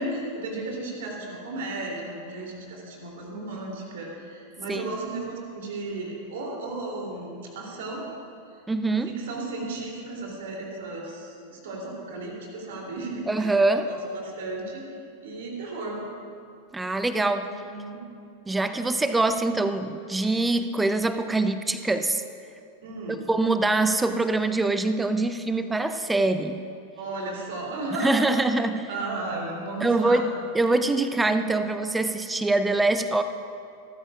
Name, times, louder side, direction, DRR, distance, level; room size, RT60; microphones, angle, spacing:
voice 1, 0.0-8.1 9.1-14.8 15.2-16.0 17.4-18.0 22.8-23.3 27.0-30.2, right 2 dB, 55° right, -1 dB, 3.1 m, -34 dB
voice 2, 8.7-9.1 13.3-13.9 16.7-17.5 18.5-22.2 23.3-26.6 28.0-28.9 29.8-33.2, right 2 dB, 10° right, 10 dB, 0.6 m, -24 dB
26.5 x 13.5 x 2.5 m, 2.5 s
figure-of-eight pair, 90°, 0 cm